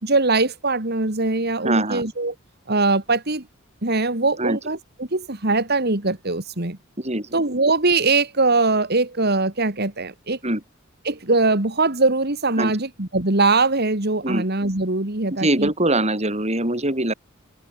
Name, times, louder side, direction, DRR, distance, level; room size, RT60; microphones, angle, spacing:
voice 1, 0.0-2.3 2.7-3.5 3.8-6.8 7.3-10.4 11.0-15.7, right 3 dB, 50° right, 2.6 m, -21 dB
voice 2, 1.6-2.0 4.4-4.6 7.0-7.4 10.4-10.6 12.6-12.7 14.2-14.4 15.3-17.1, right 1 dB, 30° right, 7.0 m, -23 dB
head